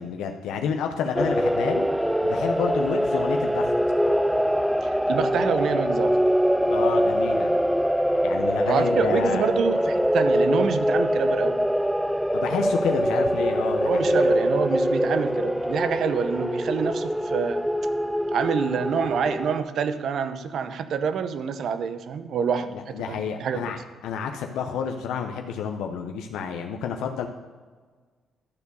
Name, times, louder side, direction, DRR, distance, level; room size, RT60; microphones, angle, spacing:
voice 1, 0.0-1.9 2.2-3.7 6.7-7.5 8.2-9.5 12.3-14.3 22.7-27.3, left 7 dB, 90° left, 4 dB, 0.6 m, -30 dB
sound 1, 1.1-19.6, equal, ahead, 0.4 m, -23 dB
voice 2, 4.8-6.2 8.7-11.6 13.9-17.6 18.3-23.6, right 6 dB, 65° right, 11 dB, 0.7 m, -27 dB
12.0 x 4.6 x 6.7 m, 1.5 s
cardioid pair, 90°, 0 cm